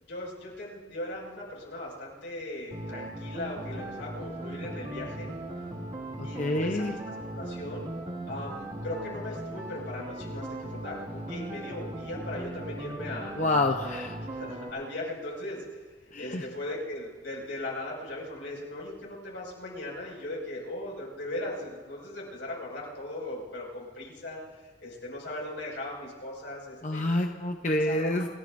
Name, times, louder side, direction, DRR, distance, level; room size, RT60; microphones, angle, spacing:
voice 1, 0.1-5.3 6.2-7.8 8.2-13.3 14.3-15.8 16.2-27.0 27.8-28.1, left 1 dB, 85° left, -4 dB, 6.0 m, -38 dB
sound 1, 2.7-14.7, right 1 dB, 40° right, 2.2 m, -38 dB
voice 2, 6.4-6.9 13.4-14.2 16.1-16.4 26.8-28.3, left 1 dB, 40° left, 3 dB, 0.7 m, -27 dB
29.0 x 16.5 x 2.6 m, 1.4 s
head